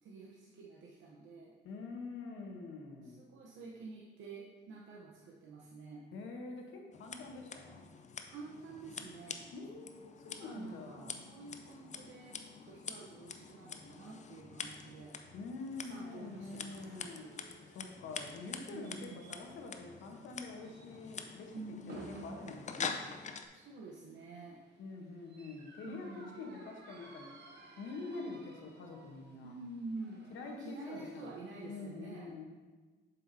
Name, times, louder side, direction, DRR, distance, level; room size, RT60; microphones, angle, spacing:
voice 1, 0.0-1.5 3.0-6.0 8.3-9.5 10.3-15.2 15.9-16.8 18.7-19.3 21.5-22.3 23.5-24.6 25.8-26.4 29.4-32.3, right 3 dB, 75° right, -4 dB, 0.9 m, -49 dB
voice 2, 1.6-3.2 6.1-7.9 9.5-11.2 15.3-17.3 17.7-23.1 24.8-27.3 27.8-29.5 30.3-32.5, left 3 dB, 80° left, 2 dB, 1.1 m, -46 dB
Scissors, 6.9-23.5, left 5 dB, 35° left, 0.5 m, -46 dB
sound 1, 15.6-31.8, right 2 dB, 60° right, 1.1 m, -58 dB
7.3 x 5.6 x 2.7 m, 1.3 s
cardioid pair, 90°, 20 cm